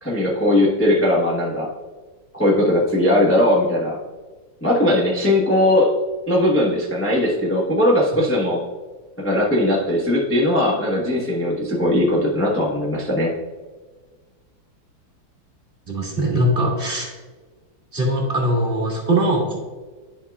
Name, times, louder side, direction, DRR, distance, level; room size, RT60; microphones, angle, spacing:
voice 1, 0.0-1.7 2.3-4.0 4.6-5.9 6.3-8.6 9.2-13.3, left 1 dB, 10° left, -5 dB, 0.7 m, -19 dB
voice 2, 15.9-17.1 17.9-19.6, right 1 dB, 30° right, -2 dB, 1.8 m, -21 dB
11.0 x 5.6 x 2.3 m, 1.4 s
omnidirectional pair, 2.1 m